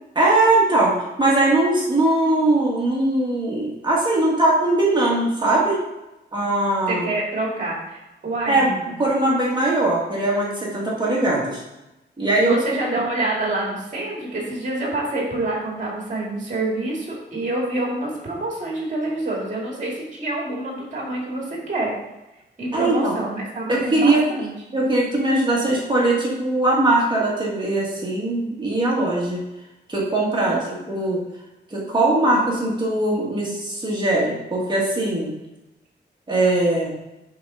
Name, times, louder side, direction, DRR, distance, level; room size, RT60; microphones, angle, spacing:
voice 1, 0.1-5.8 6.3-7.0 8.5-8.7 9.0-11.6 12.2-12.6 22.7-23.1 23.7-24.2 24.7-29.4 29.9-31.2 31.7-35.3 36.3-37.0, right 2 dB, 25° right, -4 dB, 1.6 m, -20 dB
voice 2, 6.9-8.9 12.4-21.9 22.6-24.5 30.4-30.8, right 2 dB, 40° right, -3 dB, 2.2 m, -27 dB
7.4 x 3.7 x 5.5 m, 0.96 s
wide cardioid pair, 175°, 19 cm